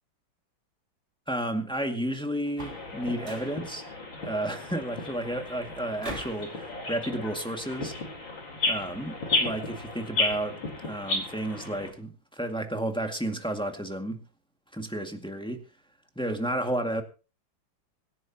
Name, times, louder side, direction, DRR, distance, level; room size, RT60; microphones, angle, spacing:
voice 1, 1.3-3.8 4.2-7.9 8.7-14.2 14.7-15.6 16.2-17.0, right 1 dB, 5° left, 1.9 m, -32 dB
sound 1, 2.5-2.9 3.2-3.6 6.0-6.5, right 2 dB, 35° right, 3.4 m, -40 dB
sound 2, 2.6-11.9, left 2 dB, 75° left, 4.8 m, -33 dB
25.5 x 11.0 x 2.9 m
omnidirectional pair, 2.1 m